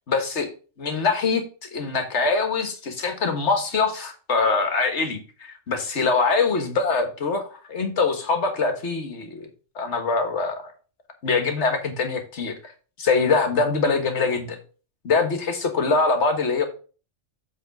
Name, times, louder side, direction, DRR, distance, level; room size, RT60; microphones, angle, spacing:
voice 1, 0.1-0.5 0.8-9.5 9.7-10.7 11.2-12.7 13.0-14.6 15.0-16.7, left 4 dB, 60° left, 6 dB, 1.6 m, -23 dB
7.8 x 3.7 x 5.9 m, 0.37 s
omnidirectional pair, 1.3 m